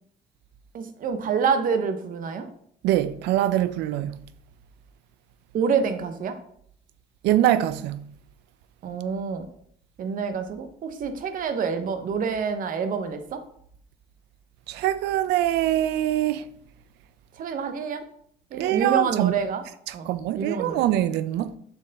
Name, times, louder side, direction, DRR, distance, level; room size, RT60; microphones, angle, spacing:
voice 1, 0.7-2.5 5.5-6.3 8.8-9.5 10.0-13.4 17.4-18.0 18.5-19.6 19.9-20.8, right 6 dB, 55° right, 0.9 m, -27 dB
voice 2, 2.8-4.2 7.2-8.0 14.7-16.4 18.6-19.3 19.9-21.5, right 13 dB, 85° right, 0.5 m, -23 dB
7.0 x 4.4 x 4.1 m
cardioid pair, 110°, 17 cm